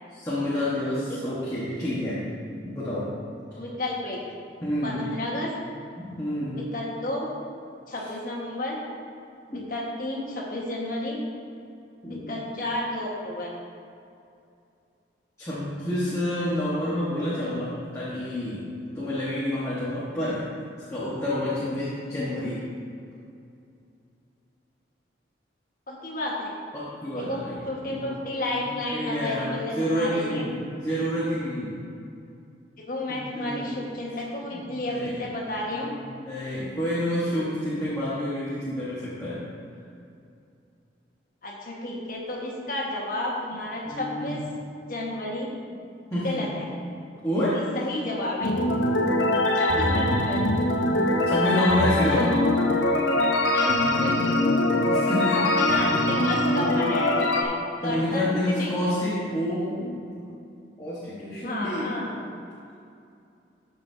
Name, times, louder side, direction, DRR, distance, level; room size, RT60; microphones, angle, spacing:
voice 1, 0.1-2.2 2.6-3.1 4.6-5.0 6.0-6.6 9.5-9.7 12.0-12.4 15.4-20.4 20.9-22.7 26.7-27.6 27.9-28.0 28.4-31.8 33.1-33.7 34.5-35.2 35.7-39.4 43.9-44.3 46.1-46.5 47.2-47.7 51.3-52.4 54.8-55.8 57.8-60.1 60.8-62.1, left 1 dB, 15° left, -10 dB, 1.3 m, -29 dB
voice 2, 3.5-4.2 4.8-5.5 6.5-7.3 7.9-8.8 9.5-11.2 12.3-13.5 25.9-26.5 27.2-27.4 27.7-30.4 32.9-35.9 41.4-44.4 44.9-45.5 46.2-46.6 47.4-48.5 49.5-50.4 53.5-54.4 55.3-57.5 57.8-58.7 61.4-62.2, left 1 dB, 50° left, -3 dB, 1.5 m, -31 dB
sound 1, 48.4-57.4, left 1 dB, 85° left, 0.8 m, -23 dB
13.0 x 5.5 x 2.7 m, 2.5 s
head